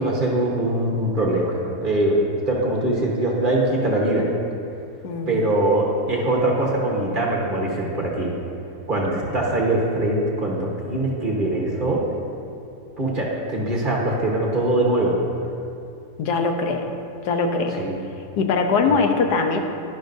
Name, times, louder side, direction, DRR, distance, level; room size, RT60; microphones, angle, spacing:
voice 1, 0.0-4.3 5.3-8.3 8.9-12.0 13.0-15.2 17.8-18.0 18.8-18.9, right 1 dB, 35° right, -3 dB, 1.2 m, -22 dB
voice 2, 5.0-5.3 16.2-16.9 17.2-17.8 18.4-19.6, left 4 dB, 80° left, 4 dB, 1.3 m, -21 dB
11.5 x 11.0 x 2.6 m, 2.5 s
omnidirectional pair, 1.7 m